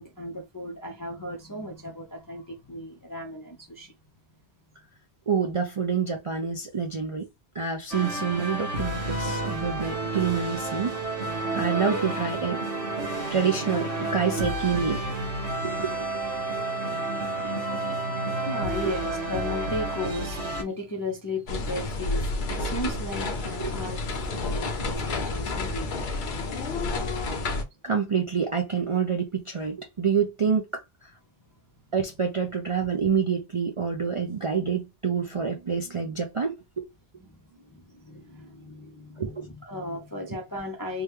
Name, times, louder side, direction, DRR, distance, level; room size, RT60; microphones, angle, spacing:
voice 1, 0.0-3.9 18.5-24.0 24.3-25.9 37.7-41.0, left 1 dB, 35° left, 0.3 m, -35 dB
voice 2, 5.3-7.3 7.5-12.6 13.3-15.0 15.6-16.1 17.4-17.8 18.8-19.0 23.6-23.7 27.8-31.1 31.9-36.9 39.2-39.5, right 6 dB, 50° right, 0.4 m, -27 dB
sound 1, 7.9-20.6, right 2 dB, 85° right, 1.7 m, -30 dB
sound 2, 21.5-27.6, left 2 dB, 50° left, 0.7 m, -30 dB
Dog / Siren, 22.9-23.0 23.5-24.9 25.2-27.3, left 8 dB, 75° left, 0.9 m, -39 dB
3.5 x 2.2 x 3.1 m
omnidirectional pair, 1.2 m